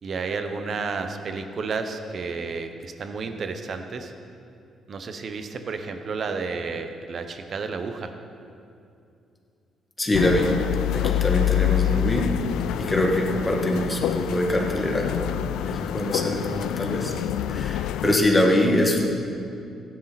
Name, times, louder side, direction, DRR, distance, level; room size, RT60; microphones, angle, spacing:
voice 1, 0.0-4.1 4.9-8.1 11.9-12.0, right 4 dB, 50° right, 7 dB, 1.1 m, -31 dB
voice 2, 10.0-10.5 10.9-12.3 12.8-17.1 17.5-19.1, left 1 dB, 20° left, 0 dB, 2.0 m, -24 dB
sound 1, 10.1-18.2, left 11 dB, 85° left, 0.3 m, -26 dB
16.0 x 11.0 x 4.2 m, 2.5 s
cardioid pair, 90°, 0 cm